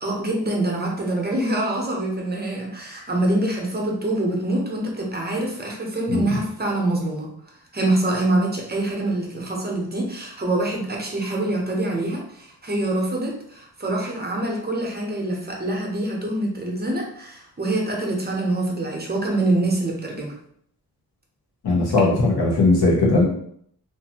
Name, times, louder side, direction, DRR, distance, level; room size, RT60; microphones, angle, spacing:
voice 1, 0.0-7.3 7.7-20.4 22.0-22.1, right 1 dB, 25° right, -1 dB, 0.7 m, -25 dB
voice 2, 21.6-23.2, left 2 dB, 80° left, -3 dB, 1.1 m, -18 dB
2.8 x 2.5 x 2.8 m, 0.66 s
cardioid pair, 80°, 38 cm